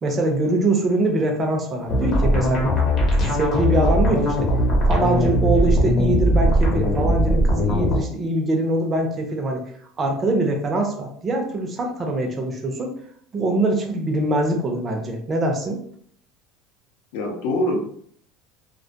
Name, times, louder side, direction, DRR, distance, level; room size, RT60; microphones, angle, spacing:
voice 1, 0.0-2.7 3.3-4.5 4.9-9.6 10.0-12.9 13.3-15.8, right 2 dB, 25° right, 2 dB, 0.5 m, -23 dB
sound 1, 1.9-8.0, equal, 35° left, 0.7 m, -19 dB
voice 2, 17.1-17.8, left 1 dB, 80° left, 2 dB, 0.6 m, -24 dB
2.2 x 2.1 x 2.7 m, 0.62 s
cardioid pair, 140°, 0 cm